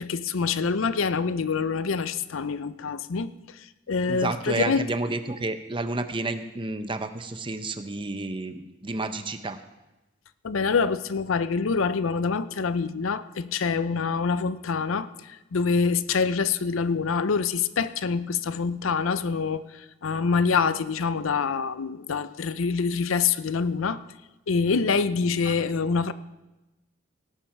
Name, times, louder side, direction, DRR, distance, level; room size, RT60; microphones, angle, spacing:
voice 1, 0.0-3.3 3.9-4.9 10.4-24.0 24.5-26.1, left 5 dB, 80° left, 14 dB, 0.5 m, -26 dB
voice 2, 4.1-9.6 25.5-25.6, right 2 dB, 25° right, 9 dB, 0.7 m, -30 dB
18.0 x 7.4 x 5.9 m, 1.0 s
head